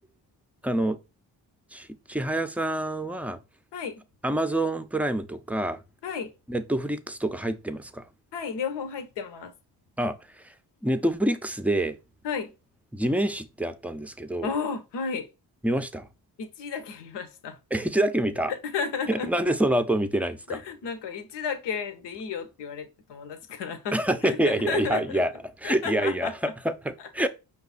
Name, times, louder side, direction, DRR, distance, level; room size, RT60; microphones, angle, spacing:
voice 1, 0.6-1.0 1.7-3.4 4.2-5.8 6.5-8.0 10.0-10.2 10.8-12.0 12.9-14.5 15.6-16.1 17.7-18.5 19.1-20.6 23.9-25.3 25.6-27.3, right 1 dB, 5° right, 0.5 m, -26 dB
voice 2, 8.3-9.5 12.2-12.5 14.4-15.3 16.4-17.6 18.5-19.3 20.5-25.2 25.6-26.3 27.0-27.1, left 6 dB, 75° left, 1.0 m, -33 dB
5.3 x 2.4 x 4.1 m
supercardioid pair, 55°, 42 cm